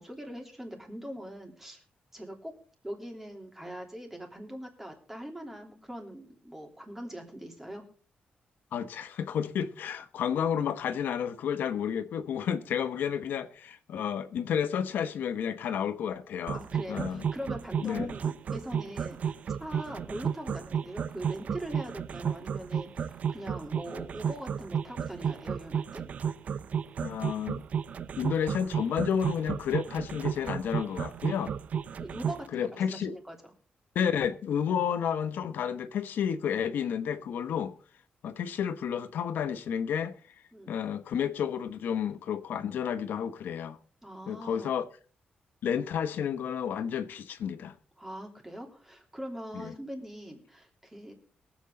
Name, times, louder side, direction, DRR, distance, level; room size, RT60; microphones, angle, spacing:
voice 1, 0.0-1.8 2.1-2.6 2.8-7.8 16.5-26.0 31.9-33.4 40.5-40.7 44.0-44.7 48.0-51.1, equal, 10° right, 3.1 m, -42 dB
voice 2, 8.7-16.6 16.9-17.2 17.8-18.1 27.0-27.6 28.2-31.5 32.5-33.1 33.9-37.7 38.2-40.2 40.7-43.8 44.3-44.8 45.6-47.7 49.5-49.7, left 8 dB, 85° left, 1.1 m, -31 dB
sound 1, 16.5-32.4, right 7 dB, 50° right, 0.6 m, -32 dB
23.0 x 8.2 x 3.9 m
wide cardioid pair, 150°, 3 cm